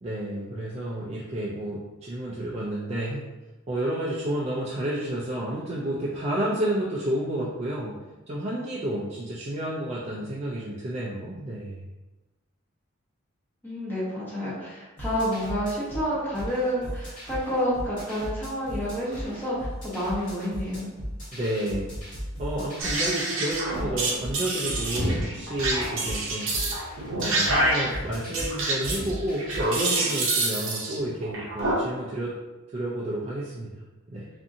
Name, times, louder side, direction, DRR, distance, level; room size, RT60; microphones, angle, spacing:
voice 1, 0.0-3.2 3.7-8.0 8.3-11.8 21.3-21.9 22.4-26.5 27.1-32.4 32.7-34.3, right 1 dB, 30° right, -6 dB, 0.3 m, -30 dB
voice 2, 13.6-20.9, equal, 10° left, -9 dB, 0.8 m, -29 dB
sound 1, 15.0-29.7, equal, 40° left, 1.3 m, -37 dB
sound 2, 22.8-31.7, right 2 dB, 65° right, 0.7 m, -27 dB
2.6 x 2.5 x 2.5 m, 1.1 s
head